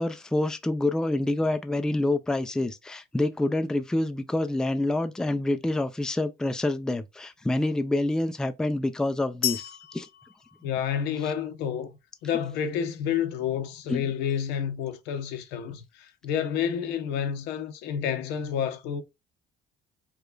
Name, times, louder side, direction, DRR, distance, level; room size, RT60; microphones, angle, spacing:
voice 1, 0.0-10.1 13.9-14.0, left 2 dB, 5° left, 0.3 m, -27 dB
sound 1, 9.4-11.4, left 13 dB, 60° left, 0.5 m, -34 dB
voice 2, 10.6-11.9 12.2-19.0, left 8 dB, 90° left, 0.8 m, -29 dB
4.8 x 2.3 x 2.4 m
cardioid pair, 110°, 17 cm